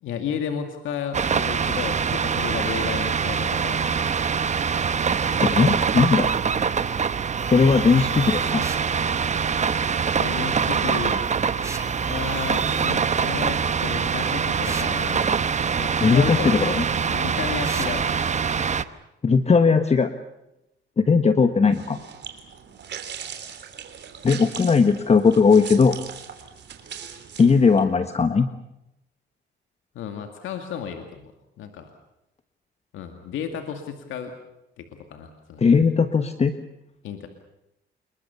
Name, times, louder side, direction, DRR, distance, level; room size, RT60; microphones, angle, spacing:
voice 1, 0.0-4.1 10.1-11.2 12.1-15.3 15.8-16.7 17.0-18.1 29.9-31.3 31.6-31.9 32.9-34.3 34.8-35.6 37.0-37.3, left 7 dB, 85° left, 5 dB, 2.3 m, -33 dB
sound 1, 1.1-18.8, right 6 dB, 35° right, 1.0 m, -24 dB
voice 2, 5.4-6.3 7.5-8.7 16.0-16.8 19.2-20.1 21.0-22.0 24.2-26.0 27.4-28.5 35.6-36.5, left 5 dB, 35° left, 9 dB, 1.3 m, -18 dB
sound 2, 8.6-8.9 11.6-11.9 14.6-14.9 17.6-18.0, right 2 dB, 15° right, 2.4 m, -36 dB
sound 3, 21.6-27.8, right 8 dB, 60° right, 3.6 m, -39 dB
27.0 x 22.5 x 7.1 m, 0.87 s
cardioid pair, 90°, 20 cm